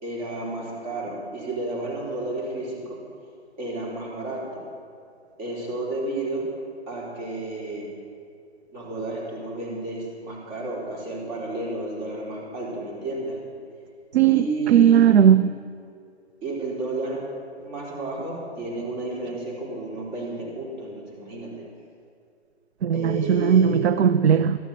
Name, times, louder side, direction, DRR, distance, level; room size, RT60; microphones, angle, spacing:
voice 1, 0.0-3.0 3.6-4.7 5.4-6.5 6.9-7.9 8.7-13.4 14.3-15.2 16.4-17.3 17.6-21.7 22.9-23.9, right 2 dB, 45° right, 4.0 m, -31 dB
voice 2, 14.7-15.5 22.8-24.6, right 9 dB, 70° right, 0.5 m, -17 dB
13.0 x 7.3 x 8.2 m
hypercardioid pair, 145°, 34 cm